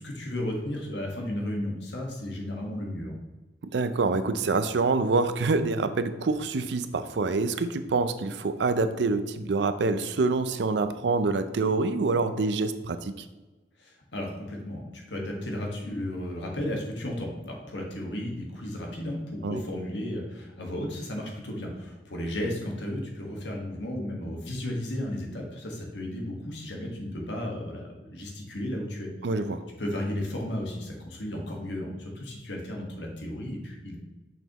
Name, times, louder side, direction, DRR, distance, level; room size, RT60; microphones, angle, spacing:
voice 1, 0.0-3.1 13.8-29.1 29.8-34.0, left 1 dB, 85° left, 0 dB, 1.5 m, -34 dB
voice 2, 3.7-13.3 19.4-19.6 29.2-29.6, right 3 dB, 75° right, 11 dB, 0.5 m, -26 dB
6.9 x 5.9 x 3.0 m, 1.1 s
head